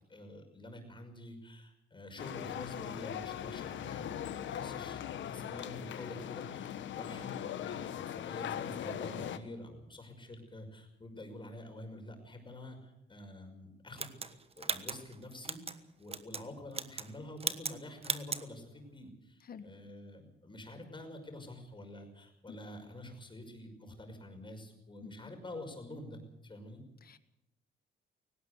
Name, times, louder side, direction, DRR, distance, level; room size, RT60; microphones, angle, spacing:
voice 1, 0.1-26.8, left 1 dB, 25° left, 4 dB, 5.7 m, -48 dB
sound 1, 2.2-9.4, left 10 dB, 70° left, 1.3 m, -40 dB
voice 2, 4.9-5.1 19.5-19.7 22.5-22.6 25.0-25.1 27.0-27.2, left 7 dB, 50° left, 12 dB, 1.6 m, -49 dB
sound 2, 14.0-15.8 16.1-16.4 16.7-17.1 17.4-17.8 18.0-18.4, right 4 dB, 30° right, 1.3 m, -37 dB
18.0 x 17.5 x 8.2 m, 0.87 s
cardioid pair, 90°, 20 cm